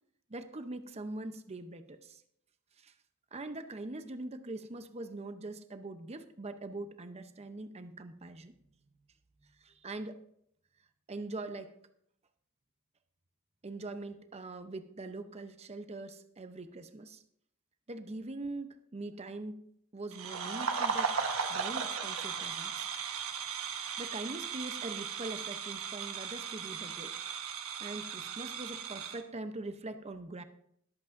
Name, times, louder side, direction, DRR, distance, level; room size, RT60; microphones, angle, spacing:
voice 1, 0.3-2.2 2.8-2.9 3.3-8.5 9.6-10.2 11.1-11.7 13.6-17.2 17.9-19.7 19.9-22.9 24.0-27.2 27.8-30.4, right 2 dB, 30° right, 9 dB, 0.7 m, -42 dB
sound 1, 20.1-29.2, right 6 dB, 70° right, 1.3 m, -36 dB
21.5 x 8.2 x 2.6 m, 0.70 s
head